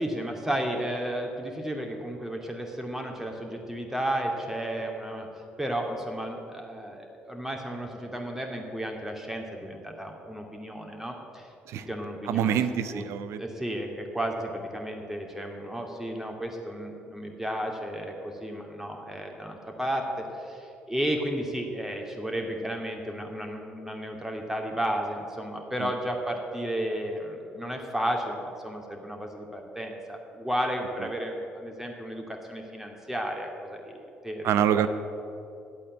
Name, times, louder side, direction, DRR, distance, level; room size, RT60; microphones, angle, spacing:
voice 1, 0.0-5.3 5.6-11.5 11.9-12.6 12.9-13.0 13.4-34.9, right 1 dB, 5° right, 2 dB, 2.5 m, -33 dB
voice 2, 12.2-13.4 25.8-25.9 31.0-31.1 34.4-34.9, right 9 dB, 65° right, 12 dB, 0.7 m, -26 dB
11.0 x 8.4 x 8.8 m, 2.7 s
hypercardioid pair, 50°, 5 cm